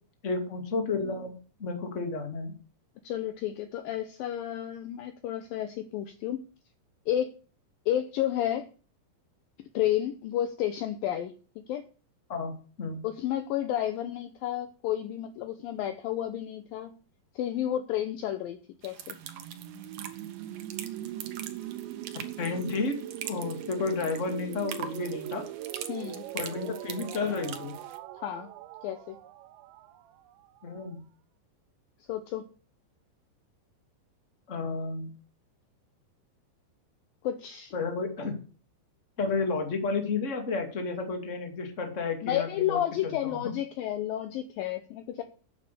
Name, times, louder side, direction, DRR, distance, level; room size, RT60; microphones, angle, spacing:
voice 1, 0.2-2.6 12.3-13.0 22.4-22.9 23.2-25.5 26.3-27.8 30.6-31.0 34.5-35.1 37.7-38.4 39.2-43.4, left 4 dB, 25° left, 5 dB, 1.7 m, -32 dB
voice 2, 3.0-6.4 7.1-7.3 7.9-8.7 9.7-11.8 13.0-16.9 17.4-18.6 18.8-19.2 25.9-26.3 28.2-28.5 28.8-29.2 32.1-32.4 37.2-37.7 42.2-45.2, left 11 dB, 80° left, 10 dB, 2.1 m, -31 dB
sound 1, 18.8-28.0, right 9 dB, 65° right, 2.1 m, -43 dB
sound 2, 19.0-30.8, right 13 dB, 90° right, 3.2 m, -41 dB
9.1 x 8.4 x 6.8 m, 0.38 s
omnidirectional pair, 5.0 m